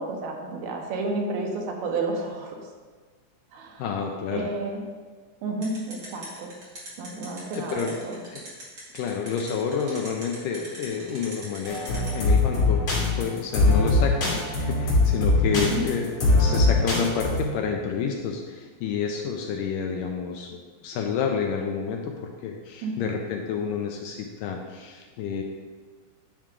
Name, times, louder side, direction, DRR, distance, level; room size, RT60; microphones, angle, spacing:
voice 1, 0.0-2.7 3.5-3.9 4.3-4.8 5.4-6.5 7.0-8.2 15.5-15.8 22.8-23.1, right 3 dB, 85° right, 1 dB, 3.0 m, -31 dB
voice 2, 3.8-4.5 7.6-7.9 8.3-8.4 8.9-25.4, left 6 dB, 80° left, 2 dB, 2.0 m, -29 dB
sound 1, 5.6-12.1, right 2 dB, 35° right, 2.3 m, -40 dB
sound 2, 11.7-17.4, left 2 dB, 45° left, 3.1 m, -21 dB
10.0 x 6.1 x 3.7 m, 1.5 s
omnidirectional pair, 4.3 m